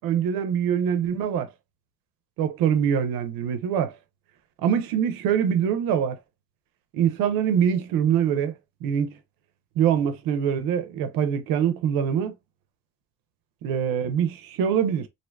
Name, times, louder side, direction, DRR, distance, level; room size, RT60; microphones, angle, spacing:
voice 1, 0.0-1.5 2.4-3.9 4.6-6.2 6.9-8.5 8.8-9.1 9.8-12.3 13.6-15.1, right 8 dB, 90° right, 0.5 m, -24 dB
2.6 x 2.2 x 2.3 m
supercardioid pair, 55°, 34 cm